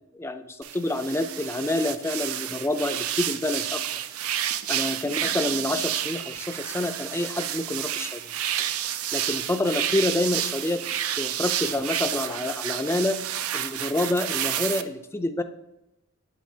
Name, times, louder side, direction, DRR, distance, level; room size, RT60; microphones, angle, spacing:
voice 1, 0.2-3.8 4.7-8.2 9.1-10.9 11.1-13.2 13.5-15.4, left 1 dB, 10° left, 9 dB, 0.4 m, -28 dB
sound 1, 0.6-14.8, right 11 dB, 85° right, 0.4 m, -30 dB
9.2 x 7.9 x 2.8 m, 0.92 s
head